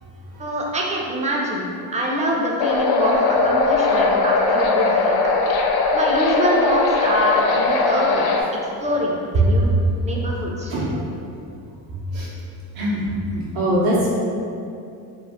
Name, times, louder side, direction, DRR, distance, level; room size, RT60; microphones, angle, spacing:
voice 1, 0.4-1.7 1.9-5.2 5.9-8.3 8.8-9.7 10.0-10.7, equal, 15° right, -2 dB, 0.4 m, -24 dB
sound 1, 2.6-8.4, left 3 dB, 65° left, 0.5 m, -19 dB
voice 2, 10.7-11.1 11.9-12.3 12.7-13.0 13.3-14.1, right 1 dB, 50° right, -7 dB, 0.7 m, -22 dB
2.3 x 2.1 x 3.4 m, 2.6 s
supercardioid pair, 75°, 44 cm